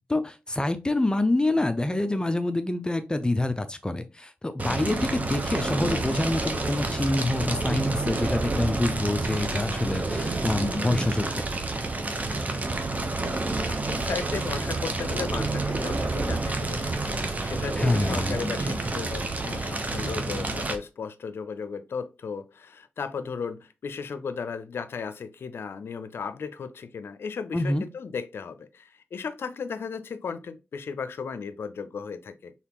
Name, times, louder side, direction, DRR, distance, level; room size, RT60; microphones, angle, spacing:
voice 1, 0.1-11.5 17.8-18.4 27.5-27.8, left 2 dB, 20° left, 0.5 m, -26 dB
Fire, 4.6-20.8, right 2 dB, 40° right, 0.9 m, -29 dB
voice 2, 13.7-32.5, left 5 dB, 80° left, 0.5 m, -35 dB
4.1 x 3.6 x 3.0 m
cardioid pair, 50°, 4 cm